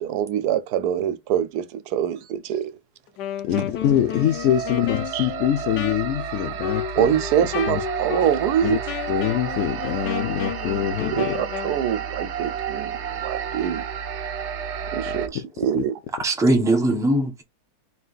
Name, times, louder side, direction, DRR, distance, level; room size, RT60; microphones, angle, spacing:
voice 1, 0.0-2.7 5.1-5.2 7.0-8.8 11.1-13.8 14.9-15.9, right 9 dB, 80° right, 1.1 m, -24 dB
Wind instrument woodwind instrument, 3.1-11.8, left 10 dB, 90° left, 1.3 m, -32 dB
voice 2, 3.5-7.1 7.7-7.8 8.6-8.8 9.1-11.4 15.1-15.2 15.7-15.8, left 11 dB, 70° left, 0.7 m, -24 dB
sound 1, 3.7-15.3, right 7 dB, 60° right, 0.7 m, -31 dB
voice 3, 16.2-17.4, right 1 dB, 5° right, 0.5 m, -20 dB
4.4 x 2.4 x 3.9 m
omnidirectional pair, 1.7 m